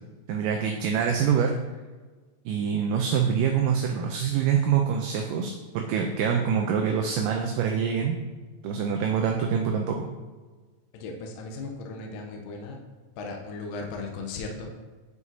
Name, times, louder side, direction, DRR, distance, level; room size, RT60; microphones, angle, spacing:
voice 1, 0.3-1.5 2.5-8.2 8.6-10.1, right 7 dB, 80° right, 2 dB, 2.0 m, -25 dB
voice 2, 10.9-12.8 13.2-14.8, left 3 dB, 80° left, 1 dB, 2.3 m, -36 dB
9.6 x 4.9 x 2.7 m, 1.3 s
omnidirectional pair, 4.2 m